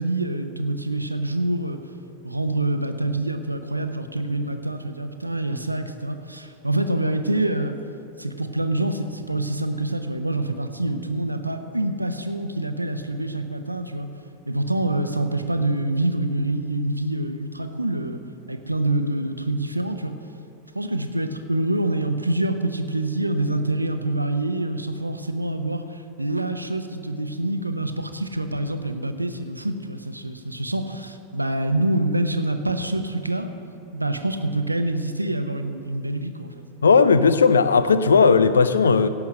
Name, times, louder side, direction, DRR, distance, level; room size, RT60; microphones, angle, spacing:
voice 1, 0.0-1.8 2.2-7.8 8.2-14.1 14.5-18.2 18.5-20.1 20.7-33.5 33.9-36.5, right 1 dB, 85° right, 8 dB, 0.7 m, -26 dB
voice 2, 36.8-39.1, left 5 dB, 70° left, 13 dB, 0.5 m, -16 dB
17.0 x 5.9 x 6.5 m, 2.7 s
figure-of-eight pair, 90°, 0 cm